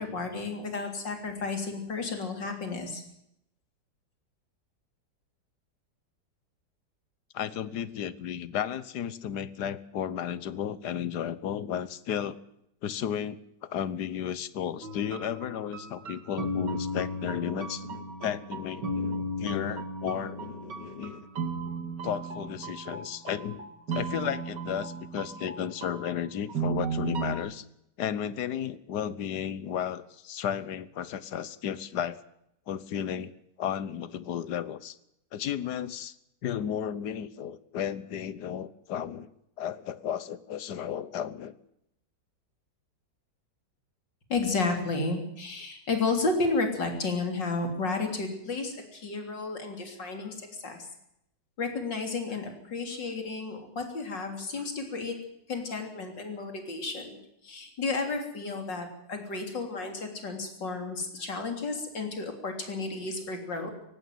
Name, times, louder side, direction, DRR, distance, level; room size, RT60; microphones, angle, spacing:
voice 1, 0.0-3.0 44.3-50.9 51.6-55.2 55.5-57.2 57.4-63.7, left 3 dB, 85° left, 5 dB, 4.0 m, -32 dB
voice 2, 7.3-12.4 12.8-21.2 22.0-23.6 23.9-27.6 28.0-32.2 32.7-33.3 33.6-35.0 35.3-36.2 36.4-39.3 39.6-41.5, left 9 dB, 70° left, 17 dB, 1.5 m, -33 dB
sound 1, 14.8-27.4, right 2 dB, 75° right, 3.1 m, -35 dB
18.0 x 15.5 x 9.2 m, 0.79 s
omnidirectional pair, 1.9 m